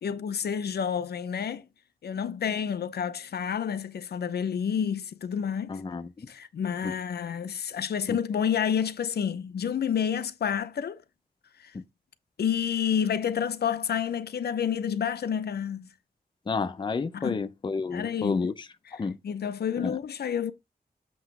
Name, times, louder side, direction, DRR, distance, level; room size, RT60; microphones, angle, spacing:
voice 1, 0.0-1.6 2.0-5.8 6.3-11.0 11.6-11.7 12.4-15.9 17.1-17.4 17.9-18.5 18.9-19.0 19.2-20.5, left 8 dB, 85° left, 0.7 m, -29 dB
voice 2, 5.7-6.1 6.8-6.9 8.1-8.2 16.5-18.5 19.0-19.2 19.8-20.0, left 4 dB, 30° left, 0.5 m, -30 dB
7.8 x 3.0 x 5.8 m
wide cardioid pair, 180°, 16 cm